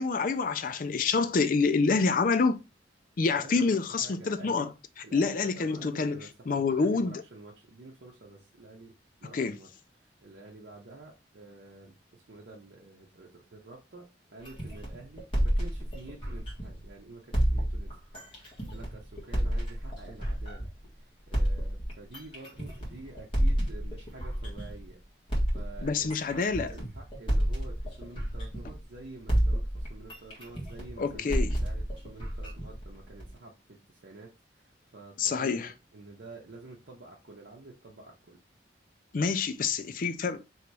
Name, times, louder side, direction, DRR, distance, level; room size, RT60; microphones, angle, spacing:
voice 1, 0.0-2.6 3.2-4.7 5.1-6.2 6.5-7.2 9.3-9.5 25.8-26.7 31.0-31.5 35.2-35.7 39.1-40.4, left 4 dB, 50° left, 0.4 m, -27 dB
voice 2, 3.3-4.7 5.0-8.9 9.2-9.7 10.0-25.0 25.5-38.4, right 2 dB, 70° right, 0.8 m, -49 dB
sound 1, 14.5-16.9 17.3-20.9 21.3-24.9 25.3-29.0 29.3-33.4, equal, 30° left, 1.6 m, -30 dB
3.2 x 3.0 x 4.6 m
head